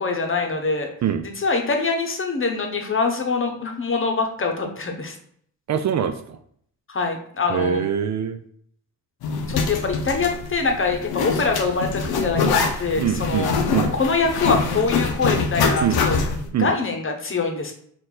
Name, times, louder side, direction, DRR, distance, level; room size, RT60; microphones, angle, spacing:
voice 1, 0.0-0.9 1.4-5.1 6.9-7.8 9.5-13.5 14.0-16.2 16.4-17.7, left 4 dB, 35° left, 3 dB, 0.9 m, -24 dB
voice 2, 5.7-6.4 7.5-8.4 13.0-13.9 15.8-16.0 16.5-16.7, right 8 dB, 50° right, 9 dB, 0.5 m, -24 dB
Zipper (clothing), 9.2-16.5, left 5 dB, 85° left, 0.7 m, -24 dB
4.4 x 2.6 x 3.9 m, 0.64 s
cardioid pair, 70°, 36 cm